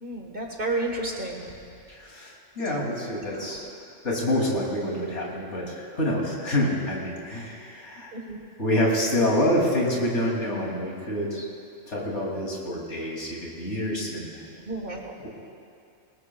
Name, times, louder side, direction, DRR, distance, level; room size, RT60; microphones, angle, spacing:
voice 1, 0.0-1.4 8.1-8.4 14.6-15.2, right 2 dB, 45° right, 1 dB, 1.6 m, -31 dB
voice 2, 1.9-3.7 4.0-8.1 8.6-11.5 11.9-14.3 15.2-15.3, left 1 dB, 70° left, -3 dB, 3.1 m, -27 dB
20.0 x 20.0 x 2.3 m, 2.5 s
omnidirectional pair, 1.3 m